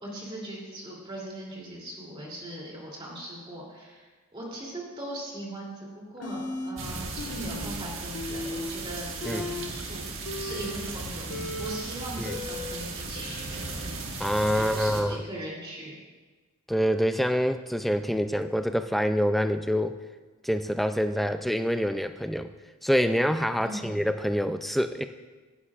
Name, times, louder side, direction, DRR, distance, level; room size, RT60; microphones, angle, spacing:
voice 1, 0.0-11.3 11.6-13.8 14.5-16.0 23.6-23.9, right 1 dB, 25° right, -4 dB, 3.0 m, -39 dB
sound 1, 6.2-6.7 7.1-7.7 8.0-8.7 9.1-13.7, left 2 dB, 90° left, 1.4 m, -37 dB
sound 2, 6.8-15.0, right 3 dB, 60° right, 1.5 m, -36 dB
voice 2, 14.2-15.2 16.7-19.9 20.4-22.5 22.8-25.0, equal, ahead, 8 dB, 0.3 m, -26 dB
17.5 x 11.5 x 2.5 m, 1.3 s
head